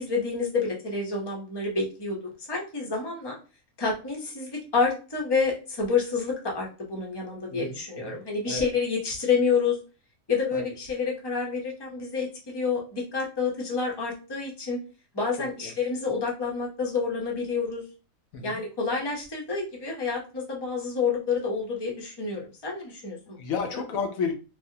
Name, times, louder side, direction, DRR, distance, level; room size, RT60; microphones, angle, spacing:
voice 1, 0.0-2.2 2.5-3.4 3.8-9.8 10.3-14.8 15.1-17.8 18.4-23.4, left 5 dB, 25° left, -1 dB, 0.5 m, -28 dB
voice 2, 7.5-8.2 8.5-8.7 10.5-10.6 15.4-15.7 18.3-18.6 23.4-24.3, left 5 dB, 75° left, 3 dB, 1.0 m, -32 dB
3.3 x 2.1 x 2.7 m, 0.33 s
omnidirectional pair, 1.5 m